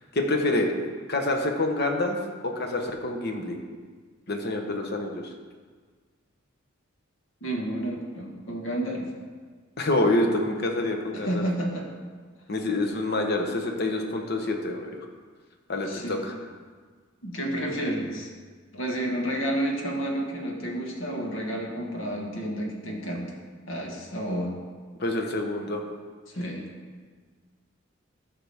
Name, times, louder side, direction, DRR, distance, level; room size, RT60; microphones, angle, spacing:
voice 1, 0.1-0.7 1.1-2.2 2.4-3.6 4.3-5.2 9.8-11.4 12.5-15.1 15.7-16.3 25.0-25.8, left 2 dB, 50° left, 3 dB, 1.0 m, -27 dB
voice 2, 7.4-9.1 11.1-11.9 15.8-16.2 17.2-18.3 18.7-23.3 23.7-24.5 26.3-26.7, right 1 dB, 70° left, 0 dB, 1.5 m, -30 dB
12.0 x 6.0 x 3.5 m, 1.6 s
head